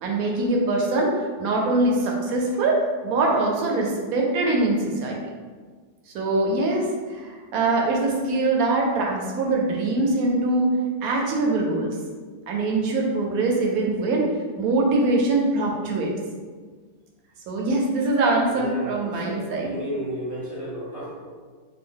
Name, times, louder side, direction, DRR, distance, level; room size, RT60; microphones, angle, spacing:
voice 1, 0.0-5.2 6.1-10.7 11.0-11.9 12.5-14.3 14.6-16.1 17.5-19.8, right 2 dB, 70° right, -1 dB, 1.0 m, -23 dB
voice 2, 18.5-21.2, equal, 20° left, -8 dB, 0.5 m, -33 dB
3.4 x 2.2 x 3.7 m, 1.5 s
omnidirectional pair, 1.7 m